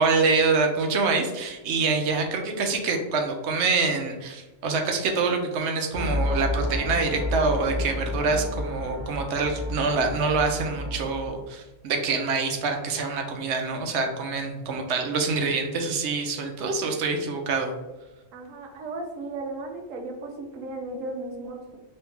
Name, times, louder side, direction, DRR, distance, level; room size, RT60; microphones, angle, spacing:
voice 1, 0.0-17.7, right 4 dB, 65° right, 3 dB, 0.8 m, -25 dB
sound 1, 5.9-11.3, left 1 dB, 35° left, 0.7 m, -31 dB
voice 2, 18.3-21.8, right 2 dB, 85° right, 2 dB, 1.1 m, -35 dB
3.2 x 2.7 x 3.2 m, 1.1 s
omnidirectional pair, 1.3 m